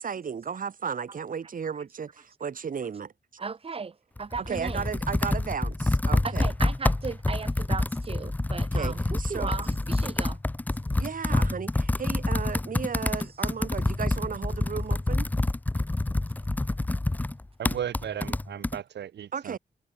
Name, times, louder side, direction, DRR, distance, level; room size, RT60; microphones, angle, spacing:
voice 1, 0.0-3.1 4.5-6.4 8.7-9.5 11.0-15.3 19.3-19.6, right 6 dB, 50° right, 1.0 m, -34 dB
voice 2, 3.4-4.9 6.2-10.4, right 5 dB, 35° right, 0.6 m, -36 dB
Computer keyboard, 4.2-18.8, left 2 dB, 10° left, 0.3 m, -27 dB
voice 3, 17.6-19.6, right 10 dB, 85° right, 0.5 m, -35 dB
wide cardioid pair, 145°, 17 cm